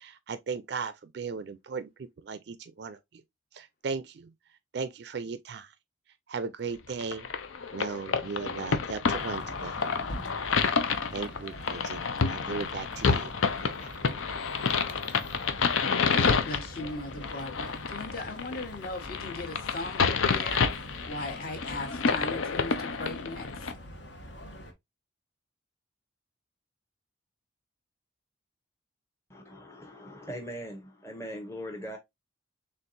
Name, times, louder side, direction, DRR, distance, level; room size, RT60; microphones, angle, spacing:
voice 1, 0.0-3.2 3.5-4.3 4.7-5.7 6.3-7.3 7.7-9.8 11.1-13.3 13.6-14.0, right 5 dB, 55° right, 0.4 m, -37 dB
sound 1, 7.0-23.7, left 5 dB, 85° left, 0.6 m, -29 dB
sound 2, 9.1-24.7, left 1 dB, 65° left, 1.0 m, -44 dB
voice 2, 16.1-23.5, left 2 dB, 50° left, 1.2 m, -38 dB
voice 3, 29.3-32.0, equal, 15° left, 0.7 m, -40 dB
4.4 x 3.5 x 2.5 m
head